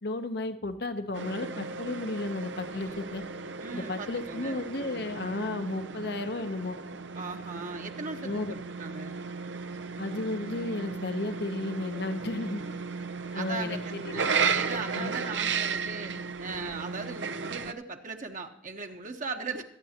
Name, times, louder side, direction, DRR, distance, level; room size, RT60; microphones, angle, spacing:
voice 1, 0.0-3.2 3.7-6.8 8.2-8.5 10.0-12.6 13.3-14.2 14.9-15.1, left 2 dB, 65° left, 8 dB, 0.9 m, -33 dB
sound 1, 1.1-17.7, right 5 dB, 90° right, 0.7 m, -35 dB
voice 2, 3.6-4.6 7.1-9.1 11.9-12.3 12.6-12.7 13.3-13.8 14.1-16.1 16.4-19.6, right 4 dB, 45° right, 4 dB, 1.1 m, -39 dB
26.0 x 9.0 x 2.9 m, 0.79 s
head